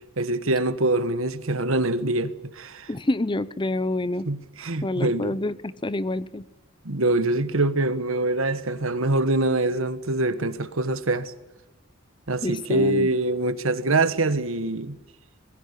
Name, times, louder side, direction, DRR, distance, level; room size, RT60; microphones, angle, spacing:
voice 1, 0.2-2.9 4.3-5.4 6.8-11.3 12.3-15.0, right 2 dB, 80° right, 1.4 m, -24 dB
voice 2, 2.9-4.3 4.8-6.4 12.4-13.1, left 2 dB, 25° left, 0.7 m, -27 dB
21.5 x 16.0 x 9.8 m
head